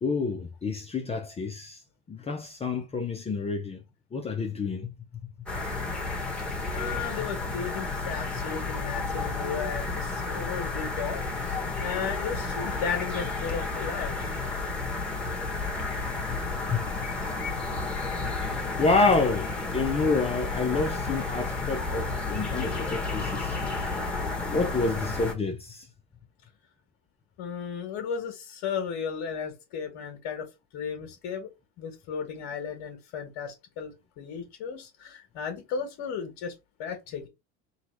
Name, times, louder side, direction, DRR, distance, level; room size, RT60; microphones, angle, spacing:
voice 1, 0.0-1.8 2.1-3.8 4.1-4.9 16.7-16.8 18.4-23.6 24.4-25.9, left 3 dB, 20° left, 0.7 m, -28 dB
sound 1, 5.5-25.3, left 3 dB, 5° left, 1.5 m, -31 dB
voice 2, 6.7-14.3 27.4-30.5 30.7-31.5 31.8-36.5 36.8-37.3, left 7 dB, 60° left, 1.6 m, -35 dB
4.0 x 2.4 x 4.5 m
supercardioid pair, 115°, 31 cm